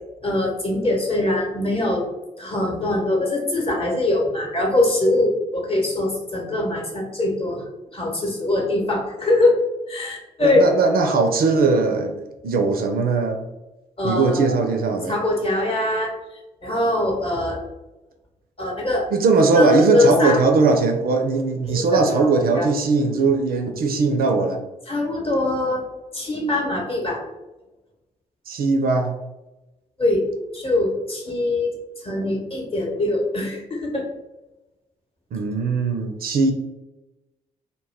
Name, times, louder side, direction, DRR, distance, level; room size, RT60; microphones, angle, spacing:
voice 1, 0.2-2.0 2.4-7.6 7.9-9.6 9.9-10.6 14.0-14.5 15.1-16.1 16.6-17.6 18.6-19.1 19.5-20.4 21.7-22.7 24.9-25.8 26.1-27.2 30.0-30.2 30.5-34.0, left 2 dB, 30° left, -1 dB, 0.9 m, -22 dB
voice 2, 10.4-13.4 14.0-15.2 19.1-24.6 28.5-29.1 35.3-36.5, right 3 dB, 55° right, 4 dB, 0.4 m, -19 dB
2.1 x 2.1 x 3.3 m, 1.0 s
hypercardioid pair, 40°, 18 cm